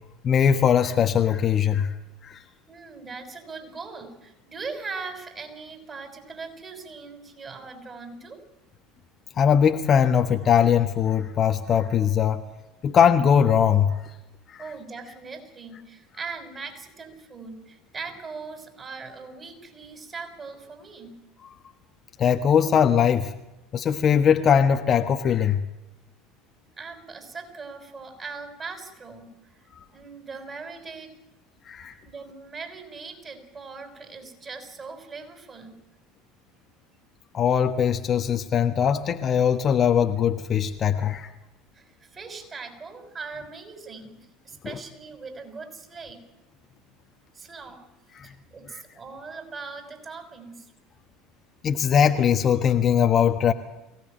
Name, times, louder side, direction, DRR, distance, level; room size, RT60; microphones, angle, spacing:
voice 1, 0.2-1.9 2.2-2.4 9.4-12.4 12.8-13.9 14.5-14.6 22.2-23.3 23.7-25.6 31.7-31.9 37.3-41.3 44.6-44.7 48.2-48.3 51.6-53.5, left 8 dB, 35° left, 6 dB, 1.4 m, -21 dB
voice 2, 2.7-8.4 14.6-21.2 26.8-31.1 32.0-35.7 41.7-46.2 47.3-47.9 48.2-50.7, right 4 dB, 25° right, 6 dB, 5.9 m, -40 dB
23.0 x 17.5 x 9.1 m, 0.97 s
figure-of-eight pair, 70°, 0 cm